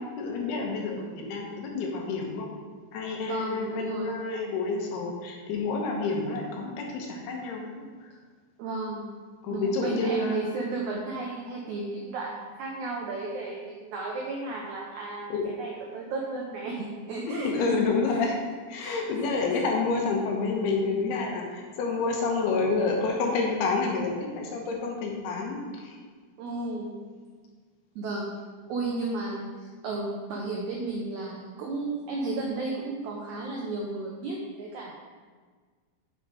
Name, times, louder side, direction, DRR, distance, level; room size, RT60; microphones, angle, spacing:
voice 1, 0.0-2.5 2.9-7.6 8.0-8.1 9.4-10.5 15.3-15.5 17.4-18.4 18.7-26.0, left 3 dB, 90° left, 0 dB, 3.2 m, -29 dB
voice 2, 3.2-4.2 8.6-9.0 9.5-17.8 18.8-19.6 26.4-27.0 27.9-28.3 28.7-34.9, right 3 dB, 85° right, -2 dB, 1.6 m, -34 dB
7.5 x 5.2 x 4.9 m, 1.5 s
omnidirectional pair, 4.4 m